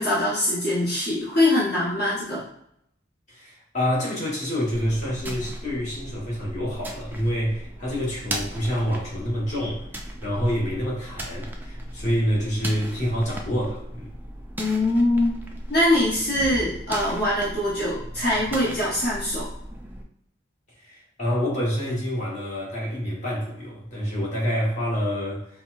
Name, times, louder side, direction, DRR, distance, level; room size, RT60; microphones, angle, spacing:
voice 1, 0.0-2.4 14.6-15.4 15.7-19.5, left 1 dB, 55° left, -8 dB, 1.0 m, -23 dB
voice 2, 3.3-14.1 20.8-25.6, equal, 40° left, -5 dB, 1.2 m, -27 dB
sound 1, 4.7-20.0, right 1 dB, 10° right, 0.3 m, -37 dB
4.3 x 2.1 x 2.4 m, 0.74 s
head